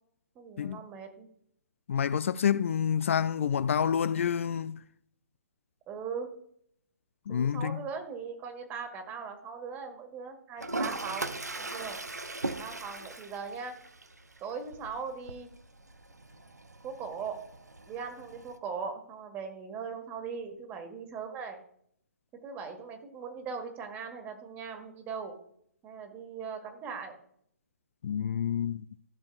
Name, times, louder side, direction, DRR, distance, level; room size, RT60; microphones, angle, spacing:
voice 1, 0.3-1.3 5.9-6.3 7.3-12.0 12.6-13.8 14.4-15.5 16.8-17.4 17.9-21.6 22.4-25.4 25.8-27.2, right 5 dB, 20° right, 1.6 m, -39 dB
voice 2, 1.9-4.8 7.3-7.9 28.0-28.9, left 8 dB, 50° left, 0.4 m, -28 dB
Toilet flush, 10.6-18.6, right 2 dB, 85° right, 0.8 m, -40 dB
15.0 x 7.0 x 2.4 m
figure-of-eight pair, 130°, 9 cm